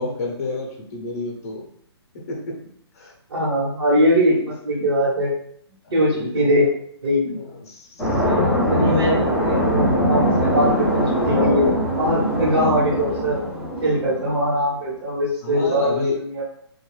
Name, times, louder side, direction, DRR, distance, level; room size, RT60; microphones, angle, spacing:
voice 1, 0.0-1.6 2.1-2.6 2.9-3.1 5.8-6.5 7.6-8.8 15.4-16.2, left 2 dB, 35° left, 0 dB, 0.7 m, -31 dB
voice 2, 3.3-5.3 5.9-6.7 7.0-7.4 8.7-11.7 12.0-13.4 13.8-16.4, equal, 60° right, -9 dB, 1.1 m, -21 dB
sound 1, 8.0-14.4, equal, ahead, 0.5 m, -21 dB
2.4 x 2.3 x 3.1 m, 0.66 s
hypercardioid pair, 160°, 14 cm